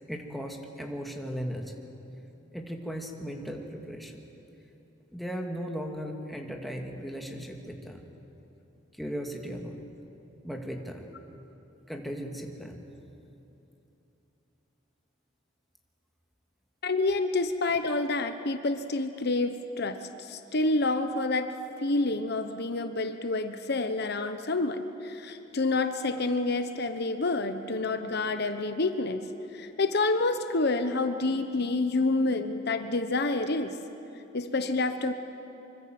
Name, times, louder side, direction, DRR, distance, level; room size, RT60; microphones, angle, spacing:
voice 1, 0.1-1.7 2.5-4.2 5.1-8.0 9.0-9.8 10.4-11.1 11.9-12.8, equal, ahead, 1 dB, 2.1 m, -37 dB
voice 2, 16.8-21.5 21.8-29.2 29.5-33.8 34.3-35.1, left 2 dB, 55° left, 8 dB, 1.0 m, -28 dB
25.0 x 24.5 x 7.8 m, 3.0 s
head